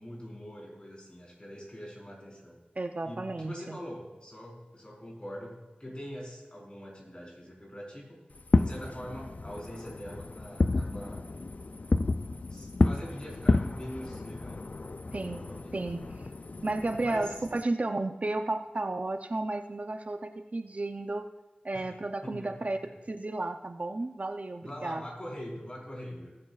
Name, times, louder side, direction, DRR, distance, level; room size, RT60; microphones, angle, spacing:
voice 1, 0.0-2.6 3.0-5.5 5.8-8.2 8.6-11.2 12.5-14.6 15.1-16.1 17.0-17.4 21.7-22.0 22.2-22.5 22.8-22.9 24.6-26.3, equal, 35° left, -3 dB, 4.4 m, -43 dB
voice 2, 2.8-3.8 15.1-15.4 15.7-16.1 16.6-21.3 21.6-22.8 23.1-25.0, right 2 dB, 50° right, 6 dB, 0.6 m, -33 dB
Fireworks, 8.4-17.6, left 3 dB, 55° left, 0.4 m, -31 dB
19.5 x 9.5 x 2.4 m, 1.1 s
wide cardioid pair, 70°, 3 cm